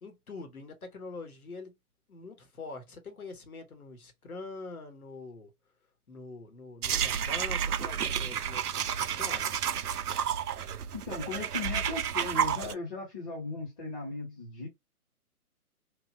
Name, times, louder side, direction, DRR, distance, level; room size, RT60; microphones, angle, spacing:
voice 1, 0.0-1.7 2.1-5.5 6.1-9.5, left 3 dB, 70° left, 1.3 m, -44 dB
sound 1, 6.8-12.7, right 8 dB, 80° right, 0.5 m, -31 dB
voice 2, 10.9-14.7, left 3 dB, 25° left, 1.2 m, -37 dB
3.1 x 2.7 x 2.6 m
figure-of-eight pair, 140°, 45 cm